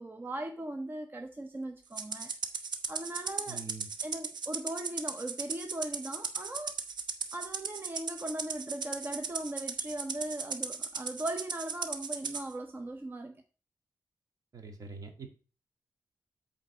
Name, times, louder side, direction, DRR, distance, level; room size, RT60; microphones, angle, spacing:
voice 1, 0.0-2.3 2.9-3.6 4.0-6.8 7.3-13.4, right 1 dB, 25° right, 0.7 m, -39 dB
Rattle (instrument), 2.0-12.4, right 5 dB, 75° right, 0.9 m, -37 dB
voice 2, 3.5-3.9 14.5-15.3, right 4 dB, 50° right, 2.0 m, -44 dB
8.4 x 3.9 x 6.9 m
wide cardioid pair, 100°, 8 cm